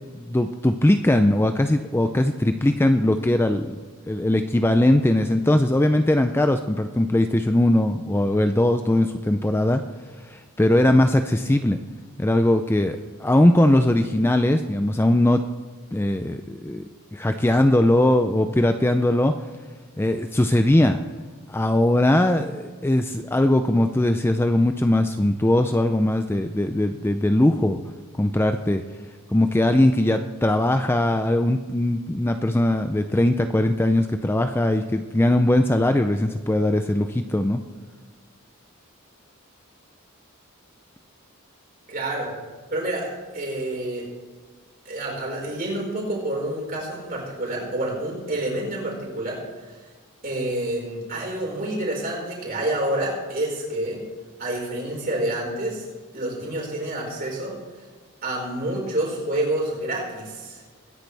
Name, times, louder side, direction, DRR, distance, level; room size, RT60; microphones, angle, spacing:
voice 1, 0.1-3.8 4.1-9.8 10.2-11.8 12.2-15.4 15.9-16.8 17.1-19.4 20.0-21.0 21.5-27.8 28.1-28.8 29.3-37.6, left 1 dB, 10° left, 7 dB, 0.4 m, -20 dB
voice 2, 41.9-42.3 42.7-43.1 43.3-44.0 44.8-49.4 50.2-54.0 54.4-55.8 56.1-57.5 58.2-60.6, right 1 dB, 40° right, -2 dB, 5.0 m, -28 dB
21.5 x 10.5 x 3.4 m, 1.4 s
head